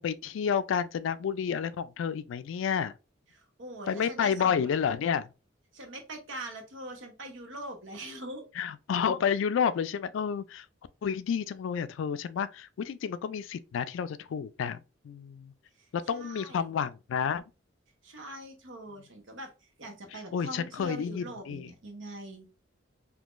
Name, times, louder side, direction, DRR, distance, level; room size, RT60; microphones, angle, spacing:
voice 1, 0.0-2.9 3.9-5.3 8.6-10.7 11.0-15.5 15.9-17.4 20.3-21.7, left 7 dB, 75° left, 0.3 m, -30 dB
voice 2, 3.3-4.7 5.7-8.5 15.8-16.7 18.0-19.5 19.8-22.5, right 1 dB, 75° right, 0.9 m, -43 dB
3.6 x 2.8 x 2.4 m
head